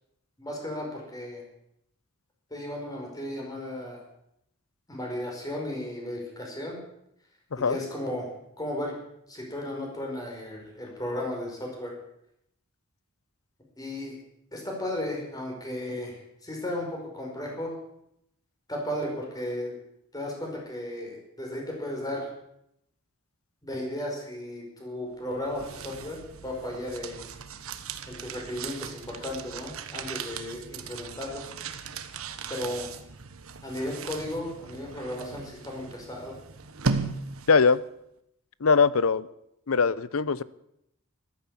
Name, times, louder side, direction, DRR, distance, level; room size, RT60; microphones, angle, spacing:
voice 1, 0.4-1.4 2.5-4.0 4.9-6.8 7.6-8.3 8.6-8.9 9.3-11.9 13.8-14.2 14.5-17.8 18.7-19.7 20.1-22.3 23.6-27.3 28.1-31.4 32.5-32.9 33.6-36.4, left 1 dB, 20° left, 0 dB, 5.4 m, -35 dB
sound 1, 25.2-37.8, right 4 dB, 85° right, 1.3 m, -37 dB
voice 2, 37.5-37.8 38.6-39.3 39.7-40.4, left 5 dB, 85° left, 18 dB, 0.7 m, -21 dB
14.0 x 13.5 x 7.3 m, 0.77 s
head